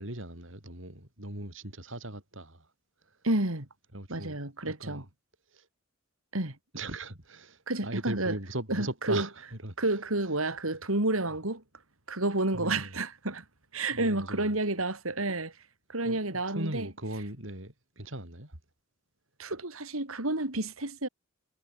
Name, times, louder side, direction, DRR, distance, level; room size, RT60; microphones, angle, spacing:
voice 1, 0.0-2.7 3.9-4.4 4.7-5.1 5.5-5.7 6.7-9.9 12.5-13.0 13.9-14.5 16.0-18.5, right 1 dB, 65° right, 6.1 m, -39 dB
voice 2, 3.2-3.7 4.1-5.0 6.3-6.5 7.7-8.3 8.7-9.3 9.8-11.6 12.1-13.4 13.7-15.5 15.9-16.9 19.4-21.1, right 2 dB, 85° right, 4.3 m, -30 dB
head